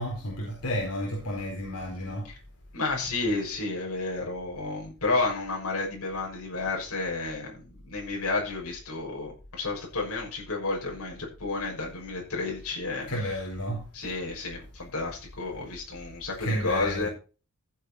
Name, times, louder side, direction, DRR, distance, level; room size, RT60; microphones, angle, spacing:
voice 1, 0.0-2.3 13.1-13.8 16.4-17.1, equal, 85° left, 4.2 m, -31 dB
voice 2, 2.7-13.4 13.9-17.1, left 3 dB, 70° left, 6.3 m, -31 dB
15.0 x 8.0 x 4.3 m
head